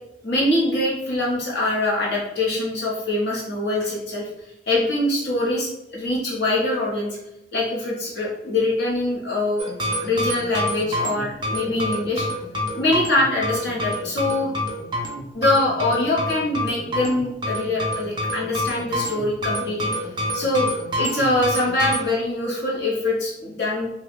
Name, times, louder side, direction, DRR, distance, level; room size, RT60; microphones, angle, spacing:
voice 1, 0.2-4.3 4.7-7.2 7.5-9.7 10.0-12.3 12.7-14.5 15.3-20.1 20.3-20.7 21.0-23.9, left 2 dB, 65° left, -4 dB, 0.9 m, -23 dB
sound 1, 9.6-22.1, equal, 25° right, 0.4 m, -27 dB
2.7 x 2.3 x 3.4 m, 0.86 s
head